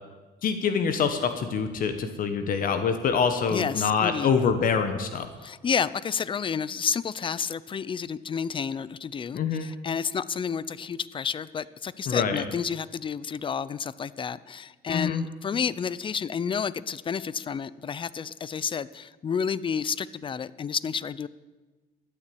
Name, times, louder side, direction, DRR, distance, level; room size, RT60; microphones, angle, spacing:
voice 1, 0.4-5.3 9.3-9.7 12.1-12.4 14.9-15.2, left 6 dB, 55° left, 8 dB, 1.3 m, -25 dB
voice 2, 3.5-4.3 5.4-21.3, left 6 dB, 30° left, 18 dB, 0.6 m, -30 dB
12.5 x 9.9 x 8.6 m, 1.2 s
cardioid pair, 110°, 17 cm